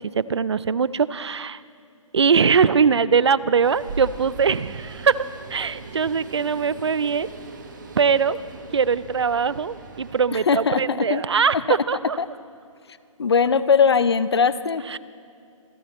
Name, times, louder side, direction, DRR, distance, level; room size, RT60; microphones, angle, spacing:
voice 1, 0.2-1.6 2.1-5.2 5.5-7.3 8.0-8.4 8.7-11.6 11.9-12.2 14.9-15.0, right 6 dB, 55° right, 18 dB, 0.4 m, -21 dB
sound 1, 3.6-10.3, right 3 dB, 35° right, 1.3 m, -39 dB
voice 2, 10.3-11.2 11.7-11.8 12.2-12.3 13.2-14.8, left 6 dB, 50° left, 16 dB, 0.5 m, -20 dB
26.5 x 16.0 x 3.1 m, 2.4 s
hypercardioid pair, 180°, 17 cm